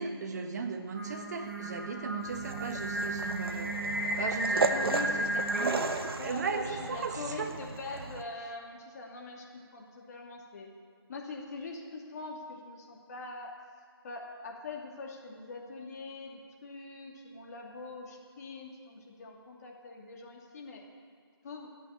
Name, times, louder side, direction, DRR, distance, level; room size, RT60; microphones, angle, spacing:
voice 1, 0.0-3.8 4.2-5.8 6.2-7.6, right 5 dB, 40° right, 6 dB, 1.3 m, -36 dB
Singing, 0.9-6.0, right 1 dB, 10° right, 2.2 m, -34 dB
sound 1, 2.2-8.2, right 4 dB, 65° right, 1.0 m, -35 dB
voice 2, 4.7-5.2 6.2-10.7 11.1-13.6 14.0-20.8 21.4-21.7, left 3 dB, 40° left, -1 dB, 2.5 m, -43 dB
13.5 x 8.4 x 8.8 m, 2.1 s
figure-of-eight pair, 160°, 13 cm